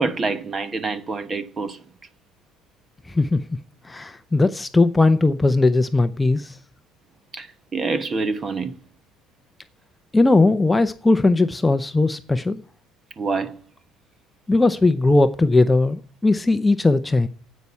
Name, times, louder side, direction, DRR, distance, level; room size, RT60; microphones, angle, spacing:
voice 1, 0.0-1.8 7.3-8.7 13.2-13.6, right 3 dB, 25° right, 1.0 m, -26 dB
voice 2, 3.1-3.4 3.8-6.6 10.1-12.6 14.5-17.3, left 2 dB, 10° left, 0.6 m, -18 dB
9.9 x 8.4 x 9.5 m
cardioid pair, 155°, 0 cm